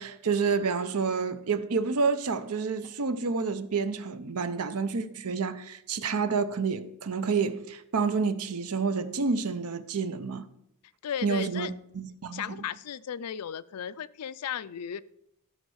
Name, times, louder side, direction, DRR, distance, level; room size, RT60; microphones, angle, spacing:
voice 1, 0.0-10.5 11.2-11.7 11.9-12.6, right 5 dB, 75° right, 0.7 m, -29 dB
voice 2, 11.0-11.7 12.3-15.0, left 8 dB, 85° left, 0.4 m, -35 dB
13.0 x 4.4 x 6.3 m
head